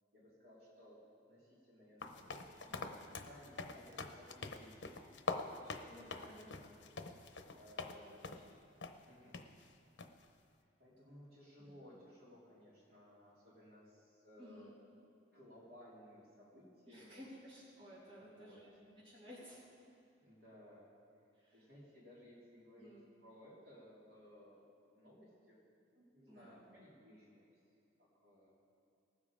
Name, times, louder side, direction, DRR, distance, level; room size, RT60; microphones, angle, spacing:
voice 1, 0.1-1.0 1.3-5.2 5.5-5.9 6.2-6.8 7.5-8.5 9.0-9.4 10.8-14.8 15.3-17.3 18.1-18.6 20.2-20.9 21.5-22.9 23.2-24.6 25.0-25.6 25.9-27.5 28.0-28.6, left 1 dB, 55° right, -7 dB, 3.4 m, -60 dB
sound 1, 2.0-8.0 8.2-8.5 8.8-8.9 9.3-9.5 10.0-10.3, left 4 dB, 70° left, 0.8 m, -45 dB
voice 2, 2.7-3.0 5.9-6.7 7.9-8.3 11.6-11.8 14.4-14.7 16.9-19.6 21.3-21.7 22.8-23.1 26.3-26.6, equal, 30° right, -9 dB, 3.0 m, -56 dB
19.0 x 7.4 x 4.9 m, 2.6 s
head